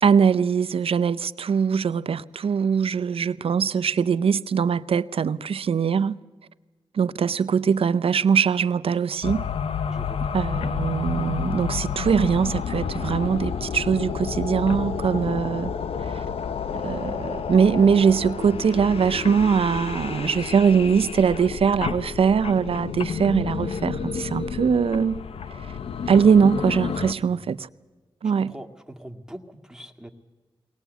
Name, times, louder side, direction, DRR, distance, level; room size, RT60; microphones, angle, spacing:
voice 1, 0.0-6.2 6.9-9.4 10.3-15.7 16.0-16.2 16.7-25.3 26.1-27.7 28.2-28.5, right 6 dB, 80° right, 0.6 m, -22 dB
sound 1, 9.2-27.1, left 6 dB, 90° left, 0.7 m, -30 dB
voice 2, 9.9-10.2 27.1-27.4 28.4-30.1, right 1 dB, 5° right, 2.1 m, -42 dB
Dog, 20.2-20.3 20.5-21.7 22.0-22.1 22.4-24.0 24.2-24.4 24.7-24.8 25.1-25.2 25.6-25.7 26.1-26.2 26.4-26.5, left 2 dB, 50° left, 6.8 m, -60 dB
22.5 x 19.0 x 8.2 m
cardioid pair, 60°, 10 cm